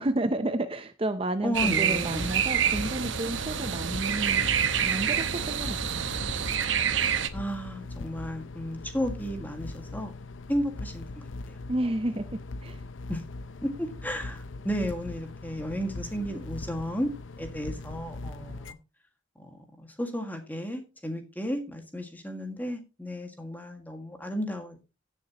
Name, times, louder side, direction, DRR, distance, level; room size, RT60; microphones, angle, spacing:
voice 1, 0.0-4.5 4.8-6.1 11.7-12.3 12.6-12.8, right 1 dB, 30° right, 0.6 m, -31 dB
voice 2, 1.4-2.3 7.3-10.1 10.5-11.6 13.1-13.2 13.6-17.1 17.4-18.8 19.4-24.8, equal, 10° left, 1.8 m, -33 dB
sound 1, 1.5-7.3, right 8 dB, 80° right, 0.9 m, -27 dB
sound 2, 2.1-18.7, left 2 dB, 85° left, 0.6 m, -40 dB
16.0 x 7.1 x 2.9 m
head